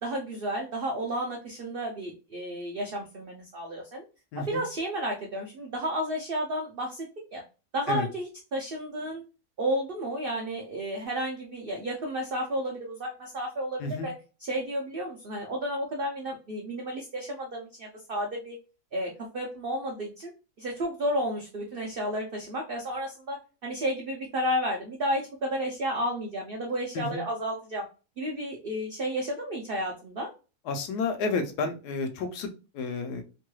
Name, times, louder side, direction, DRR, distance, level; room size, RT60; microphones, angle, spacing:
voice 1, 0.0-4.0 4.3-7.1 7.3-7.4 7.7-9.2 9.6-14.1 14.4-18.6 18.9-20.3 20.6-27.8 28.2-30.3, equal, 75° right, 0 dB, 0.5 m, -32 dB
voice 2, 4.3-4.6 7.9-8.1 13.8-14.1 26.9-27.2 30.7-33.2, left 4 dB, 85° left, 6 dB, 1.2 m, -31 dB
3.1 x 2.2 x 3.0 m, 0.32 s
omnidirectional pair, 1.7 m